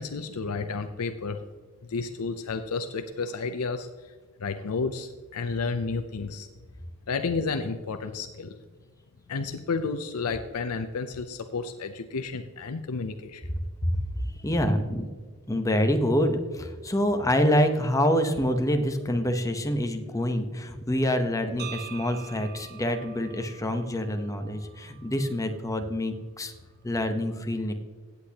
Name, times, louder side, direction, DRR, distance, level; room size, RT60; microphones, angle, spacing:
voice 1, 0.0-1.4 1.9-3.9 4.4-6.5 7.1-8.6 9.3-13.4, left 4 dB, 85° left, 8 dB, 0.6 m, -31 dB
voice 2, 14.4-15.1 15.5-26.5 26.8-27.7, equal, 15° left, 6 dB, 0.9 m, -26 dB
sound 1, 21.6-25.7, right 10 dB, 45° right, 0.8 m, -45 dB
16.0 x 8.3 x 2.9 m, 1.5 s
head